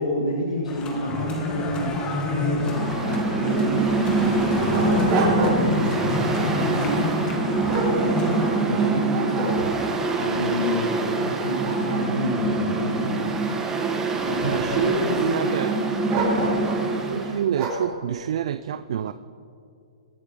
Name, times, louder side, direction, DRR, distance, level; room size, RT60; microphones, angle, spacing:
voice 1, 0.0-13.2 14.3-15.5 16.4-16.5, left 1 dB, 80° left, -1 dB, 1.7 m, -30 dB
sound 1, 0.7-8.5, left 3 dB, 25° left, 2.0 m, -29 dB
Mechanical fan, 2.6-17.4, right 3 dB, 15° right, 1.4 m, -25 dB
Dog, 3.5-3.6 4.2-5.8 6.3-6.6 7.2-8.7 9.1-10.0 10.6-10.7 11.2-13.5 14.2-14.8 16.1-16.9 17.5-17.9, right 3 dB, 40° right, 3.6 m, -29 dB
voice 2, 14.4-15.8 17.0-19.1, right 9 dB, 60° right, 13 dB, 0.4 m, -27 dB
21.5 x 8.1 x 3.7 m, 2.5 s
hypercardioid pair, 130°, 4 cm